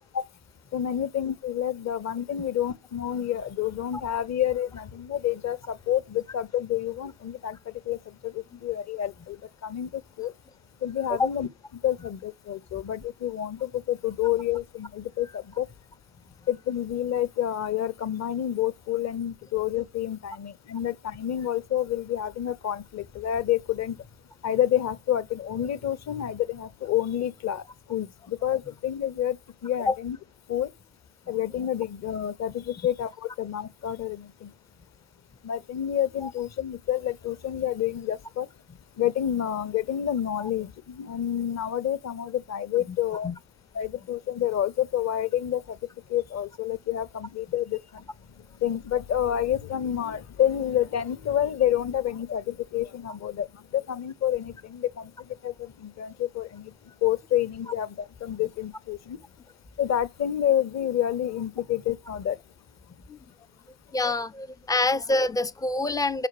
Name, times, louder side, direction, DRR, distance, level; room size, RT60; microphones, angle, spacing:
voice 1, 0.7-7.6 7.9-10.3 10.8-11.5 11.8-15.7 16.5-24.0 24.4-30.2 30.5-30.7 31.3-34.5 35.4-38.5 39.0-43.3 43.7-45.8 46.1-48.0 48.6-56.7 57.0-59.2 59.8-62.4, left 11 dB, 35° left, 0.8 m, -28 dB
voice 2, 63.9-66.3, left 2 dB, 10° left, 0.4 m, -26 dB
5.8 x 4.6 x 4.8 m
figure-of-eight pair, 50°, 45 cm